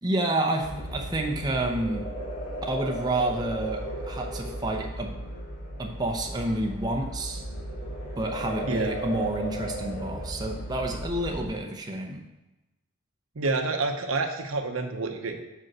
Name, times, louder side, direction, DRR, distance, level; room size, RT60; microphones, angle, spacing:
voice 1, 0.0-2.1 2.7-5.1 5.8-7.4 8.2-12.2, right 2 dB, 20° right, 1 dB, 0.7 m, -29 dB
sound 1, 0.6-11.5, equal, 55° left, 2.2 m, -35 dB
voice 2, 13.4-15.4, right 3 dB, 80° right, 5 dB, 0.8 m, -28 dB
5.4 x 5.2 x 6.0 m, 0.99 s
head